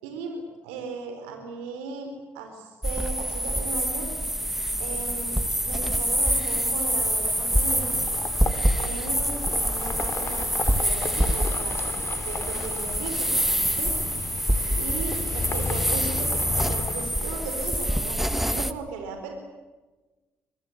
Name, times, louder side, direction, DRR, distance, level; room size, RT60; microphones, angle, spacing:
voice 1, 0.0-4.1 4.8-7.9 8.7-11.8 12.2-13.4 13.7-13.9 14.8-18.2 18.5-19.3, right 4 dB, 90° right, 5 dB, 4.2 m, -37 dB
sound 1, 2.8-18.7, equal, 5° right, 2.1 m, -26 dB
sound 2, 6.9-17.8, left 5 dB, 50° left, 3.9 m, -35 dB
26.0 x 23.0 x 8.7 m, 1.2 s
hypercardioid pair, 50°, 6 cm